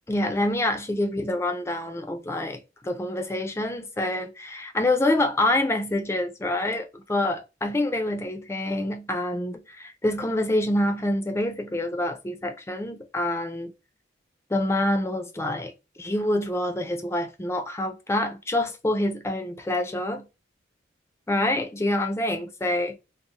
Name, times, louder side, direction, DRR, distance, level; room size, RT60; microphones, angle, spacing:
voice 1, 0.1-13.7 14.5-15.7 16.0-20.2 21.3-23.0, left 1 dB, 15° left, 0.4 m, -26 dB
2.7 x 2.0 x 2.8 m
head